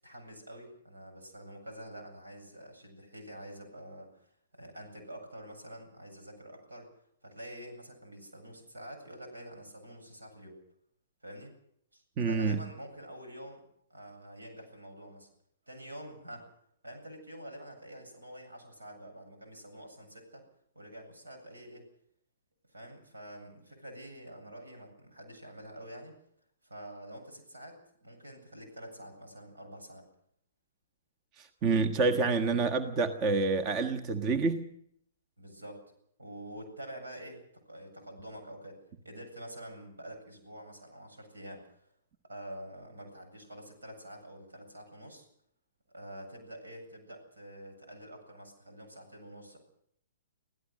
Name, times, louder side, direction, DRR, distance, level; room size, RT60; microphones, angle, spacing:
voice 1, 0.0-6.9 7.2-10.6 11.2-11.5 11.9-13.6 13.9-15.3 15.7-16.5 16.8-20.4 20.7-21.9 22.7-26.1 26.6-30.1 35.4-35.8 36.2-41.8 42.2-45.3 45.9-49.6, right 1 dB, 85° right, 4 dB, 8.0 m, -47 dB
voice 2, 12.2-12.6 31.4-34.7, right 4 dB, 30° right, 8 dB, 1.4 m, -28 dB
26.5 x 16.0 x 6.4 m, 0.70 s
hypercardioid pair, 125°, 0 cm